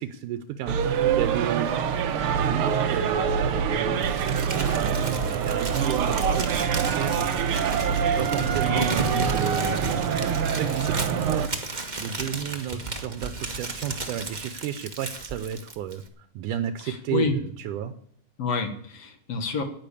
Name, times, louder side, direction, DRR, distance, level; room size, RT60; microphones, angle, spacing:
voice 1, 0.0-1.7 2.3-7.2 8.2-9.8 10.6-17.9, right 10 dB, 85° right, 10 dB, 2.3 m, -32 dB
sound 1, 0.7-11.5, right 7 dB, 65° right, 1.4 m, -25 dB
sound 2, 1.1-6.1, left 5 dB, 30° left, 1.0 m, -49 dB
Crumpling crinkling, 4.0-16.1, right 3 dB, 50° right, 0.5 m, -34 dB
voice 2, 16.8-17.4 18.4-19.6, left 4 dB, 55° left, 6 dB, 2.5 m, -28 dB
10.5 x 10.5 x 8.4 m, 0.63 s
omnidirectional pair, 3.6 m